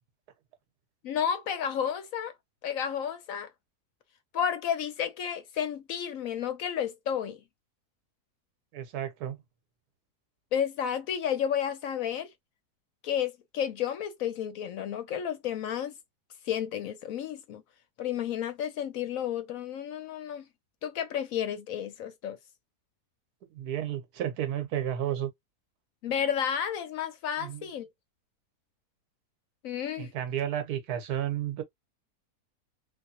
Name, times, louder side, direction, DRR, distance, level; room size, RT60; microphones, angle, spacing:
voice 1, 1.0-2.3 2.6-3.5 4.3-7.4 10.5-12.3 13.0-15.9 16.4-17.6 18.0-20.5 20.8-22.4 26.0-27.9 29.6-30.1, left 9 dB, 70° left, 0.9 m, -31 dB
voice 2, 8.7-9.4 23.5-25.3 27.4-27.6 30.0-31.6, right 10 dB, 75° right, 1.3 m, -32 dB
3.4 x 2.4 x 2.6 m
omnidirectional pair, 1.7 m